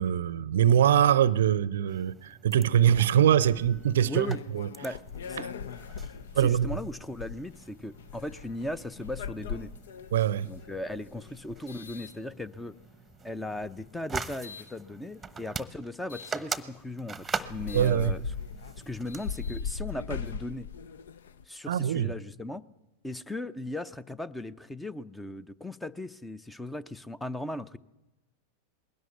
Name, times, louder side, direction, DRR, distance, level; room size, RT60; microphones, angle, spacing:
voice 1, 0.0-4.3 4.5-4.7 5.4-5.5 6.3-6.7 10.1-10.5 17.7-18.1 21.7-22.1, right 10 dB, 60° right, 0.6 m, -23 dB
sound 1, 1.9-19.6, right 5 dB, 10° right, 1.0 m, -43 dB
sound 2, 2.8-12.8 13.5-14.7 16.1-16.4 16.9-17.0 17.3-21.5, left 6 dB, 60° left, 0.7 m, -40 dB
voice 2, 4.1-4.4 4.8-5.0 5.2-5.5 6.4-9.7 10.5-12.7 13.2-18.2 18.9-20.7 21.5-22.6 23.0-27.8, left 1 dB, 5° left, 0.7 m, -37 dB
21.0 x 17.0 x 8.2 m
figure-of-eight pair, 90°, 0 cm